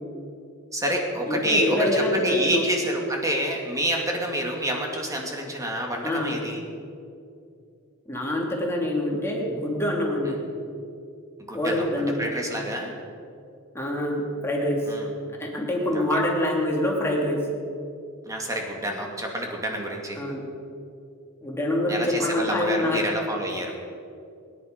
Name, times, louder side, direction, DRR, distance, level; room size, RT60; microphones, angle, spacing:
voice 1, 0.7-6.6 10.2-10.4 11.5-11.9 12.2-12.9 14.9-15.1 15.9-16.0 18.3-20.2 21.9-23.7, equal, 15° right, 1 dB, 2.2 m, -28 dB
voice 2, 1.3-2.7 6.0-6.4 8.1-10.4 11.5-12.2 13.7-14.8 15.4-17.4 20.2-20.4 21.4-23.0, left 1 dB, 10° left, -2 dB, 2.8 m, -25 dB
22.0 x 10.5 x 5.2 m, 2.4 s
head